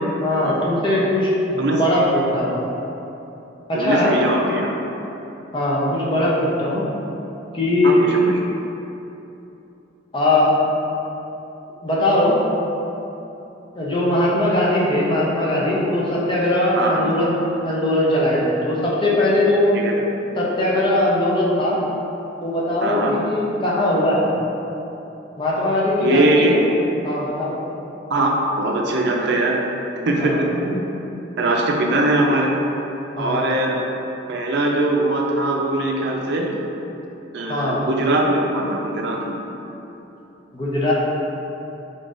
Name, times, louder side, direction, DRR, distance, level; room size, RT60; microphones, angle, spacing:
voice 1, 0.2-2.5 3.7-4.1 5.5-6.8 7.5-8.0 10.1-10.6 11.8-12.4 13.7-19.8 20.4-21.8 22.4-24.3 25.4-26.6 27.0-27.6 30.2-30.4 33.2-33.6 37.5-37.8 40.5-40.9, left 1 dB, 25° left, -6 dB, 0.6 m, -20 dB
voice 2, 3.7-4.7 7.8-8.4 16.7-17.1 19.7-19.9 22.8-23.2 26.0-26.5 28.1-28.3 28.6-29.6 30.1-30.8 31.4-32.5 33.2-33.8 34.3-36.5 37.3-39.4, right 2 dB, 60° right, 0 dB, 0.5 m, -21 dB
3.8 x 3.8 x 2.5 m, 3.0 s
head